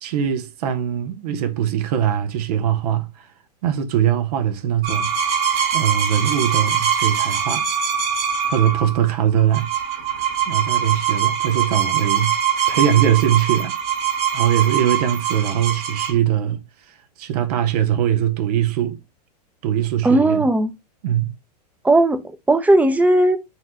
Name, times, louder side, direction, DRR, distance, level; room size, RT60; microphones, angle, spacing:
voice 1, 0.0-3.3 3.6-5.1 5.7-7.7 8.5-9.7 10.5-12.3 12.7-13.8 14.3-16.6 16.9-19.0 19.6-20.4 21.0-21.3, right 10 dB, 65° right, 0.8 m, -21 dB
sound 1, 4.8-16.1, right 8 dB, 50° right, 1.8 m, -23 dB
voice 2, 20.0-20.7 21.8-22.2 22.5-23.4, right 2 dB, 5° right, 0.6 m, -16 dB
4.2 x 2.5 x 4.2 m
hypercardioid pair, 115°, 21 cm